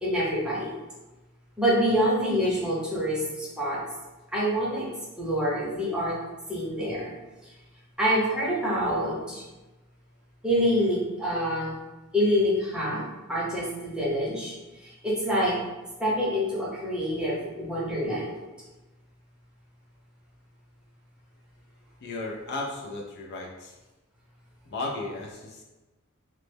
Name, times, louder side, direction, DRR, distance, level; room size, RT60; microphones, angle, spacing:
voice 1, 0.0-0.7 1.6-3.8 4.3-4.9 5.2-6.2 6.5-7.1 8.0-9.4 10.4-11.7 12.1-13.0 13.3-14.5 14.8-15.6 16.0-18.3, equal, 5° right, -7 dB, 0.7 m, -26 dB
voice 2, 22.0-23.8 24.7-25.6, left 2 dB, 50° left, -1 dB, 0.4 m, -35 dB
3.0 x 2.0 x 3.3 m, 1.1 s
head